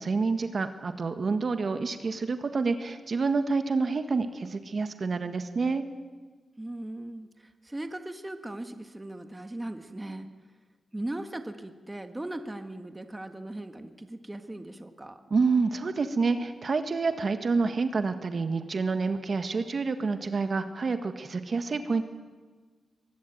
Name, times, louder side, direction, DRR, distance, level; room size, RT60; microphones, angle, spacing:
voice 1, 0.0-5.8 15.3-22.0, right 4 dB, 50° right, 8 dB, 1.7 m, -28 dB
voice 2, 6.6-7.3 7.6-10.3 10.9-15.2, right 1 dB, 15° right, 7 dB, 1.6 m, -38 dB
24.0 x 19.5 x 9.2 m, 1.4 s
cardioid pair, 90°, 0 cm